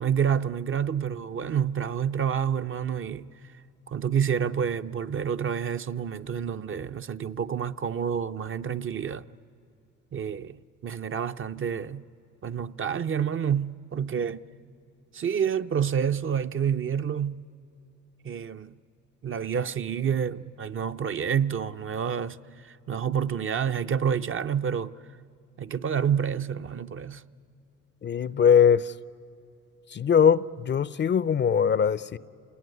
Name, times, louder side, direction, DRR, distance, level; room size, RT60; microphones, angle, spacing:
voice 1, 0.0-3.3 3.9-9.2 10.1-10.6 10.8-12.0 12.4-14.5 15.1-17.4 18.2-18.7 19.2-24.9 25.6-27.2, right 8 dB, 45° right, 0.6 m, -28 dB
voice 2, 28.0-28.9 29.9-32.2, left 7 dB, 35° left, 0.5 m, -21 dB
27.5 x 20.0 x 9.5 m
cardioid pair, 90°, 30 cm